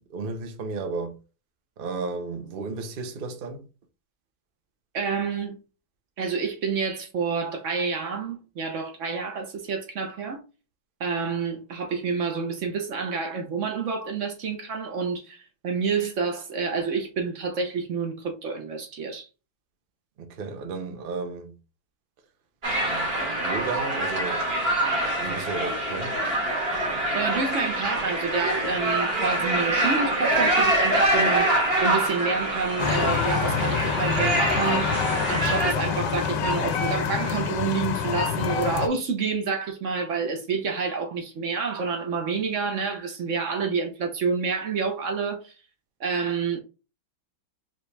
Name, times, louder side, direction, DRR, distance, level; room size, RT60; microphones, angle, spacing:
voice 1, 0.1-1.2 1.8-3.6 20.2-21.5 22.8-24.4 25.2-26.2, right 4 dB, 70° right, 0.5 m, -33 dB
voice 2, 4.9-5.6 6.2-10.4 11.0-19.3 27.1-34.9 35.3-45.5 46.0-46.6, right 5 dB, 50° right, 1.0 m, -28 dB
sound 1, 22.6-35.7, right 1 dB, 35° right, 1.5 m, -25 dB
sound 2, 32.8-38.9, left 6 dB, 70° left, 1.3 m, -26 dB
5.2 x 3.0 x 3.3 m
omnidirectional pair, 2.2 m